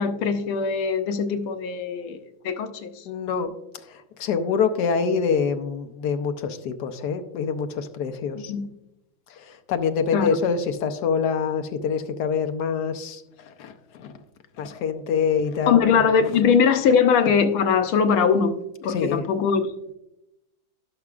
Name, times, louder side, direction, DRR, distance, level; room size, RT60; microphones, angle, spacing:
voice 1, 0.0-2.2 2.4-2.9 8.5-8.7 10.1-10.4 15.7-18.6 18.8-19.6, left 6 dB, 85° left, 1.6 m, -21 dB
voice 2, 3.0-8.5 9.3-14.2 14.6-15.8 16.3-16.4 18.8-19.3, left 6 dB, 70° left, 1.0 m, -26 dB
17.0 x 5.9 x 2.4 m
omnidirectional pair, 2.3 m